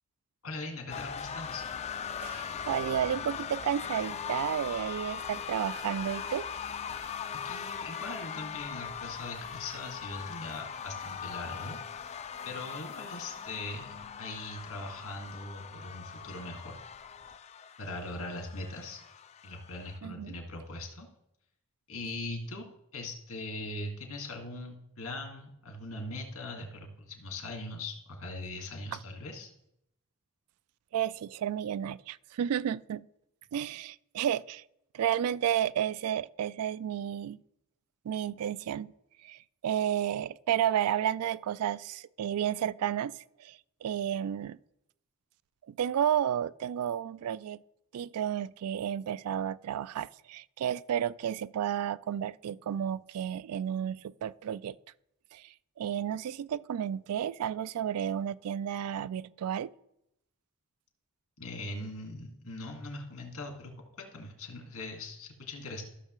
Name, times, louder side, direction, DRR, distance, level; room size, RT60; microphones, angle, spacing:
voice 1, 0.4-1.6 7.4-12.2 12.5-16.7 17.8-19.0 19.4-21.1 21.9-22.7 22.9-29.5 61.4-63.7 64.0-65.8, left 2 dB, 80° left, 1.9 m, -41 dB
sound 1, 0.9-20.0, left 7 dB, 30° left, 0.3 m, -40 dB
voice 2, 2.2-6.4 20.0-20.3 30.9-33.1 33.5-34.6 34.9-37.4 38.1-38.9 39.2-44.6 45.7-47.6 47.9-54.8 55.3-59.7, right 9 dB, 90° right, 0.3 m, -32 dB
14.0 x 6.5 x 3.1 m
head